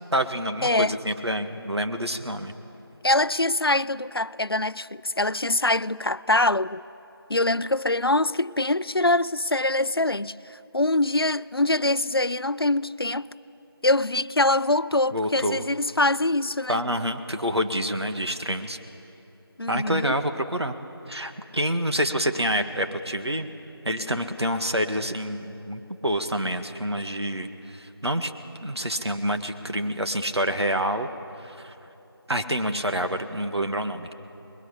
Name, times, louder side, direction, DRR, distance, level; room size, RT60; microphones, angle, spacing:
voice 1, 0.1-2.5 15.1-15.6 16.7-18.8 19.7-20.8 21.1-23.5 23.9-28.3 28.6-31.1 31.4-31.7 32.3-34.1, equal, 85° right, 1.9 m, -27 dB
voice 2, 0.6-1.0 3.0-6.8 7.3-10.3 10.7-13.3 13.8-16.8 19.6-20.1, left 2 dB, 65° left, 0.5 m, -24 dB
26.5 x 21.0 x 8.4 m
figure-of-eight pair, 180°, 13 cm